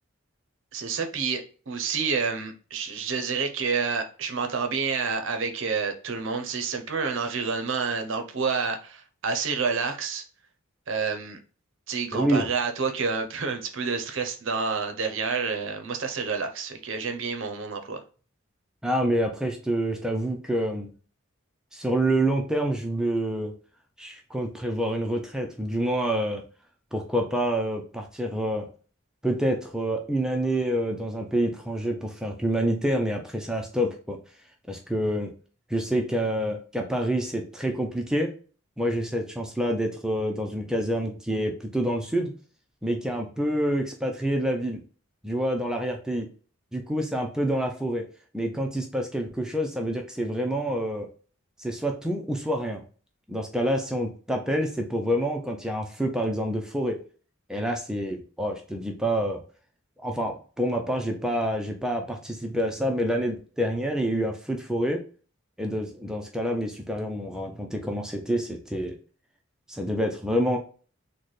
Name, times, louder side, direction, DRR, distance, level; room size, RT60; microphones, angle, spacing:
voice 1, 0.7-10.2 10.9-11.4 11.9-18.0, right 5 dB, 60° right, 0.6 m, -29 dB
voice 2, 12.1-12.5 18.8-20.9 21.7-23.5 24.0-26.4 26.9-28.7 29.2-34.2 34.7-35.3 35.7-38.3 38.8-42.3 42.8-44.8 45.2-46.3 46.7-48.1 48.3-51.1 51.6-52.8 53.3-57.0 57.5-59.4 60.0-65.0 65.6-69.0 69.7-70.6, right 1 dB, 5° right, 0.4 m, -27 dB
4.0 x 2.1 x 3.1 m
head